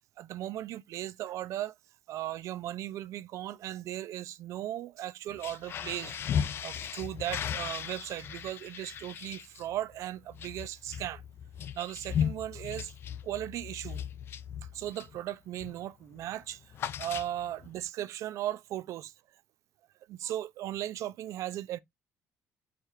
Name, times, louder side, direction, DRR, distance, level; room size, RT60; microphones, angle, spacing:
voice 1, 0.2-1.7 2.1-6.2 6.6-11.2 11.7-12.9 13.2-14.0 14.7-16.6 17.0-19.1 20.1-21.8, right 13 dB, 60° right, 0.4 m, -37 dB
sound 1, 5.3-15.2 15.6-15.9 16.1-17.7, left 8 dB, 40° left, 0.3 m, -37 dB
4.8 x 2.4 x 4.3 m
cardioid pair, 165°, 6 cm